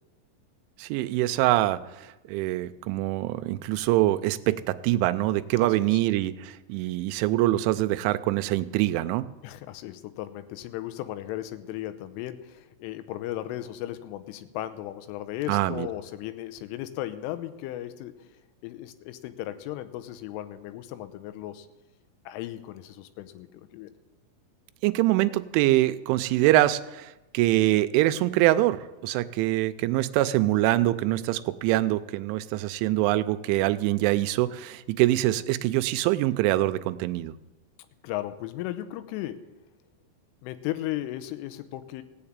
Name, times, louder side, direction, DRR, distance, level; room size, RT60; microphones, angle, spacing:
voice 1, 0.8-9.2 15.5-15.9 24.8-37.3, right 16 dB, 85° right, 11 dB, 3.0 m, -24 dB
voice 2, 5.6-6.0 9.4-18.2 18.6-21.7 22.3-23.9 38.0-39.5 40.4-42.0, left 14 dB, 85° left, 11 dB, 3.3 m, -36 dB
16.5 x 7.3 x 8.7 m, 1.0 s
omnidirectional pair, 5.6 m